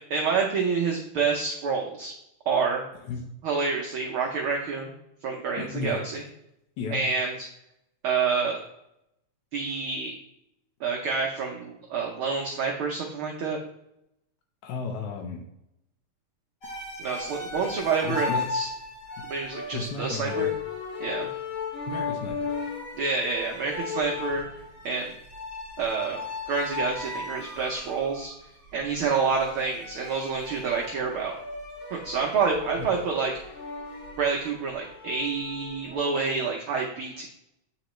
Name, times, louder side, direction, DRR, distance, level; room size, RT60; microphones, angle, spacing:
voice 1, 0.0-2.1 2.5-2.8 3.4-4.9 5.2-6.2 6.9-7.5 8.0-8.6 9.5-10.1 10.8-13.6 17.0-18.7 19.3-20.5 21.0-21.3 23.0-24.5 24.8-25.1 25.8-26.2 26.5-28.3 28.7-31.3 31.9-33.3 34.2-37.3, right 5 dB, 75° right, 0 dB, 1.2 m, -28 dB
voice 2, 5.6-6.0 6.8-7.0 14.6-15.4 18.0-18.4 19.7-20.5 21.9-22.5 32.8-32.9, left 5 dB, 80° left, 1 dB, 2.1 m, -33 dB
sound 1, 16.6-36.0, left 4 dB, 35° left, 1.8 m, -36 dB
8.7 x 4.1 x 3.0 m, 0.81 s
omnidirectional pair, 3.3 m